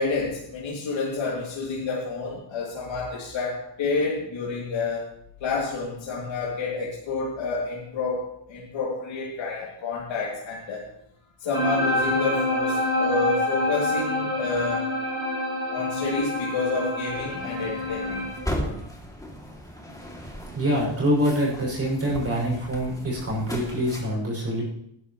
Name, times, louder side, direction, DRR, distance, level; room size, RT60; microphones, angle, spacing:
voice 1, 0.0-5.1 5.4-10.9 11.4-14.9 15.7-18.3 18.7-18.8, left 4 dB, 80° left, -4 dB, 2.5 m, -29 dB
sound 1, 11.5-18.4, left 1 dB, 10° right, 4.4 m, -26 dB
sound 2, 17.1-24.0, equal, 10° left, 2.5 m, -37 dB
voice 2, 20.5-24.6, equal, 30° right, -3 dB, 6.2 m, -25 dB
18.5 x 11.0 x 3.1 m, 0.73 s
cardioid pair, 115°, 45 cm